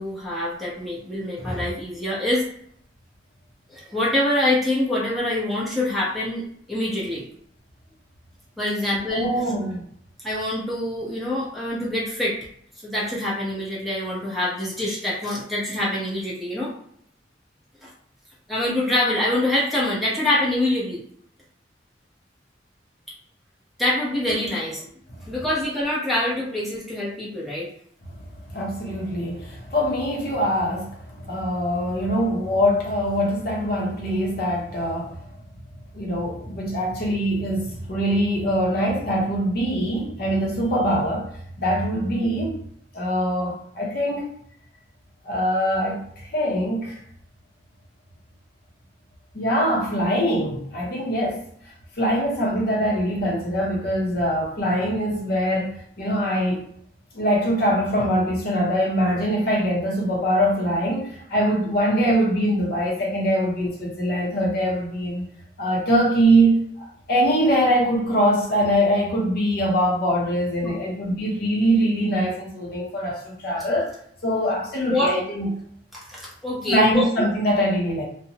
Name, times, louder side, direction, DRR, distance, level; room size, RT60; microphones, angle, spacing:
voice 1, 0.0-2.4 3.7-7.2 8.6-9.3 10.2-12.4 12.8-16.7 17.8-17.9 18.5-21.0 23.8-24.8 25.2-27.7 70.6-70.9 74.8-75.1 76.1-77.1, left 1 dB, ahead, -8 dB, 0.8 m, -25 dB
voice 2, 9.1-9.8 24.5-24.6 28.5-35.2 35.9-42.6 42.9-44.3 45.2-47.0 49.3-51.4 52.0-56.7 57.1-65.2 65.6-73.9 74.2-75.5 76.7-78.1, equal, 55° left, -2 dB, 0.6 m, -23 dB
2.5 x 2.1 x 2.8 m, 0.66 s
head